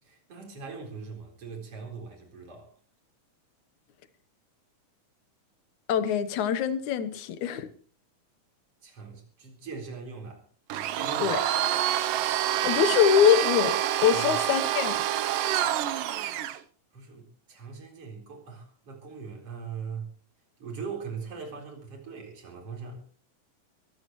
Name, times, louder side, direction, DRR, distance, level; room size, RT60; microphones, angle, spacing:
voice 1, 0.0-2.7 8.8-10.4 10.9-11.4 14.1-14.4 16.9-20.1 20.6-23.0, right 5 dB, 45° right, 4.9 m, -41 dB
voice 2, 5.9-7.7 11.2-11.4 12.6-15.0, left 8 dB, 70° left, 2.4 m, -24 dB
Domestic sounds home sounds, 10.7-16.6, right 12 dB, 85° right, 2.5 m, -27 dB
23.5 x 15.5 x 3.1 m
omnidirectional pair, 3.7 m